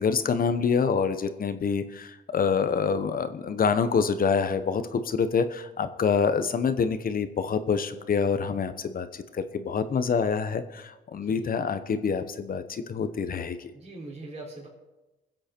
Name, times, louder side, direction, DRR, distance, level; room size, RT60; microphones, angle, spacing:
voice 1, 0.0-13.7, left 6 dB, 45° left, 11 dB, 1.0 m, -26 dB
voice 2, 13.7-14.7, right 2 dB, 30° right, -6 dB, 4.1 m, -41 dB
21.0 x 7.8 x 4.5 m, 1.1 s
cardioid pair, 90°, 20 cm